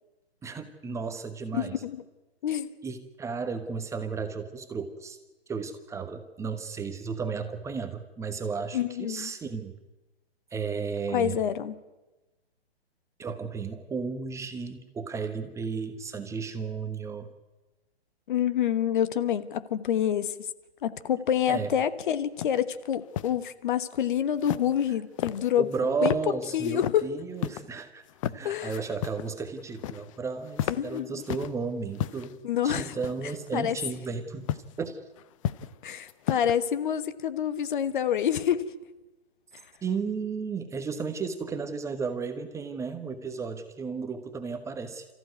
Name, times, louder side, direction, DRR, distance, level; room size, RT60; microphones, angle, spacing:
voice 1, 0.4-1.8 2.8-5.2 5.5-9.7 10.5-11.4 13.2-17.3 21.5-21.7 25.6-28.0 28.3-32.4 32.6-34.5 34.8-35.0 39.8-45.1, right 5 dB, 10° right, 8 dB, 1.2 m, -33 dB
voice 2, 1.5-2.0 2.4-2.7 8.7-9.3 11.1-11.7 18.3-20.5 20.8-25.7 26.0-26.1 26.5-27.0 28.4-28.8 30.8-31.2 32.4-32.9 33.5-33.7 35.8-38.7, left 9 dB, 50° left, 13 dB, 1.3 m, -27 dB
sound 1, 22.4-22.6 22.9-23.3 24.4-24.9 25.2-25.8 26.0-26.2 26.6-27.0 27.4-27.6 28.1-28.4 28.7-29.3 29.6-30.2 30.5-31.5 31.9-32.3 33.0-33.5 34.5-34.7 35.2-35.8 36.1-36.6, left 12 dB, 30° left, 0.7 m, -33 dB
29.0 x 14.5 x 9.4 m, 1.1 s
figure-of-eight pair, 130°, 32 cm